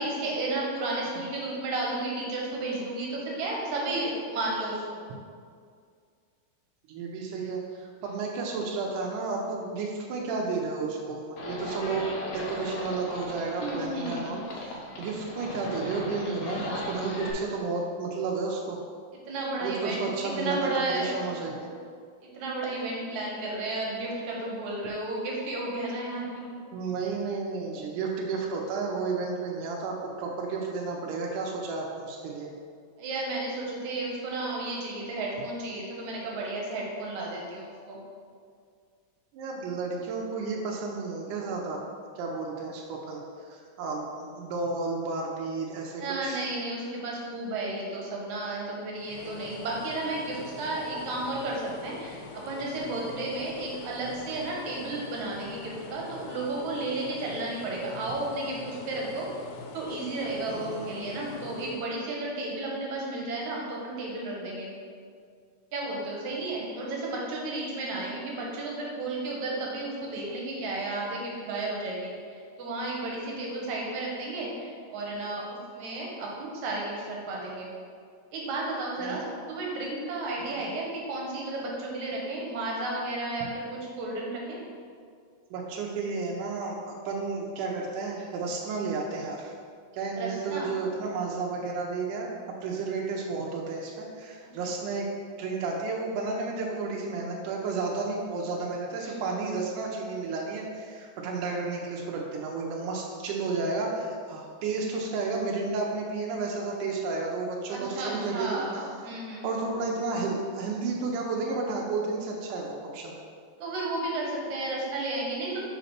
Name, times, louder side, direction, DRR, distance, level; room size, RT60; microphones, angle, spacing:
voice 1, 0.0-5.0 13.6-14.2 19.3-21.4 22.3-26.6 33.0-38.0 46.0-59.3 59.7-64.7 65.7-75.5 75.7-77.7 78.3-79.2 79.5-84.6 90.2-90.7 94.6-94.7 99.0-99.2 107.7-109.5 113.6-115.6, right 2 dB, 70° right, -3 dB, 2.2 m, -33 dB
voice 2, 6.9-12.1 12.3-18.8 19.6-21.6 26.7-32.5 39.3-41.8 42.2-46.4 60.5-60.9 79.0-79.2 80.6-80.7 85.5-89.5 89.9-92.3 92.6-95.1 95.4-108.8 109.4-113.1, right 4 dB, 85° right, -1 dB, 2.2 m, -32 dB
Livestock farm animals working animals, 11.4-17.3, left 2 dB, 65° left, 1.7 m, -37 dB
sound 1, 49.0-61.9, left 4 dB, 90° left, 2.3 m, -44 dB
5.0 x 4.1 x 5.7 m, 2.1 s
omnidirectional pair, 3.7 m